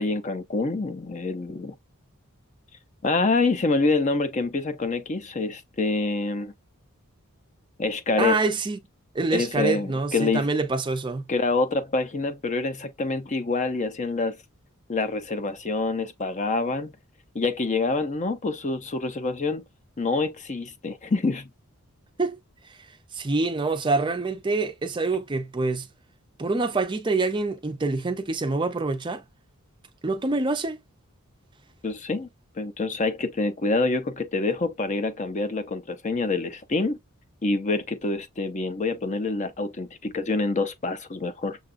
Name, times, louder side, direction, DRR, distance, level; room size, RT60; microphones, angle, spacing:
voice 1, 0.0-1.7 3.0-6.5 7.8-8.4 9.3-10.5 11.3-14.4 14.9-16.9 17.3-19.6 20.0-21.5 31.8-32.3 32.6-37.0 37.4-41.6, left 3 dB, 35° left, 0.5 m, -26 dB
voice 2, 8.2-8.8 9.1-11.3 22.2-22.4 23.1-25.9 26.4-29.2 30.0-30.8, right 3 dB, 20° right, 0.4 m, -26 dB
6.7 x 2.3 x 2.4 m
head